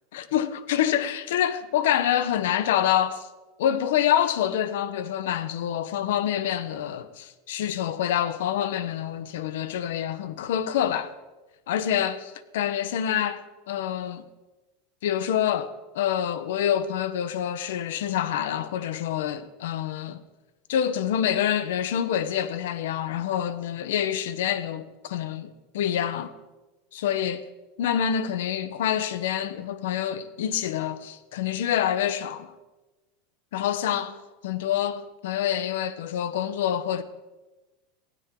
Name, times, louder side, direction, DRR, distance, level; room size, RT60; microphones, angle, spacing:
voice 1, 0.1-3.3 3.6-11.1 11.7-14.2 15.0-20.2 20.7-26.3 26.9-27.4 27.8-32.5 33.5-34.2 34.4-37.0, left 10 dB, 85° left, 1.0 m, -26 dB
18.5 x 16.5 x 3.8 m
supercardioid pair, 165°, 0 cm